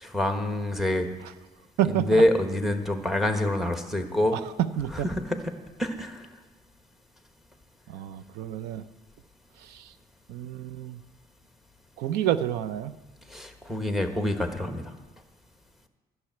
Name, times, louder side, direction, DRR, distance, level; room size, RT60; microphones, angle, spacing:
voice 1, 0.0-1.1 1.9-4.4 5.0-5.4 5.8-6.3 13.3-14.8, left 1 dB, ahead, 5 dB, 1.1 m, -26 dB
voice 2, 1.8-2.2 4.3-5.1 7.9-8.8 9.6-9.9 10.3-11.0 12.0-13.0, right 11 dB, 90° right, 13 dB, 0.6 m, -29 dB
12.0 x 6.9 x 9.2 m, 1.2 s
cardioid pair, 135°, 16 cm